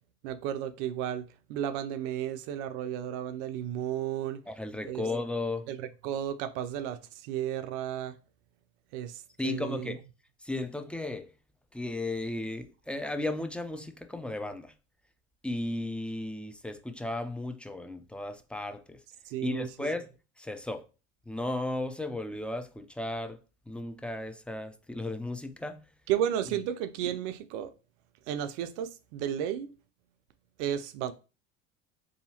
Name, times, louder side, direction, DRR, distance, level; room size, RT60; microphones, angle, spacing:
voice 1, 0.2-4.4 4.8-5.1 5.7-8.2 8.9-10.0 19.3-19.7 26.1-27.7 28.3-29.7 30.6-31.1, right 10 dB, 70° right, 0.5 m, -33 dB
voice 2, 4.5-5.7 9.4-10.0 10.4-11.3 11.7-14.7 15.4-19.0 19.4-20.1 20.4-20.8 21.3-23.4 23.7-25.8, left 2 dB, 5° left, 0.4 m, -35 dB
4.7 x 2.8 x 2.8 m
hypercardioid pair, 75°, 38 cm